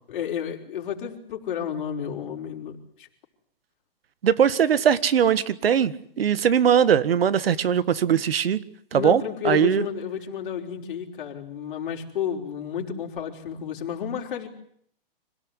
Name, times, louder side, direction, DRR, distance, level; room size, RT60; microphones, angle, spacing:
voice 1, 0.1-3.1 8.9-14.5, left 8 dB, 60° left, 2 dB, 5.1 m, -31 dB
voice 2, 4.2-8.6 8.9-9.8, right 8 dB, 80° right, 16 dB, 1.8 m, -20 dB
26.0 x 18.0 x 9.9 m, 0.65 s
hypercardioid pair, 155°, 29 cm